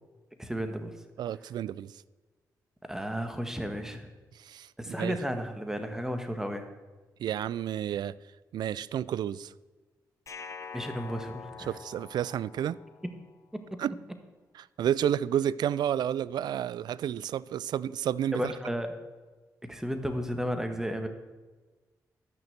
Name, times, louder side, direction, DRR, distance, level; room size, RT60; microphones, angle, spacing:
voice 1, 0.4-1.0 2.9-4.1 4.8-6.7 10.7-11.7 13.5-13.8 18.3-18.9 19.6-21.1, equal, 5° right, 1.7 m, -33 dB
voice 2, 1.2-1.9 4.4-5.2 7.2-8.2 8.5-9.5 11.7-12.8 13.8-13.9 14.6-18.5, right 10 dB, 80° right, 0.3 m, -31 dB
sound 1, 10.3-13.3, left 6 dB, 45° left, 1.0 m, -45 dB
12.5 x 6.0 x 8.0 m
cardioid pair, 60°, 7 cm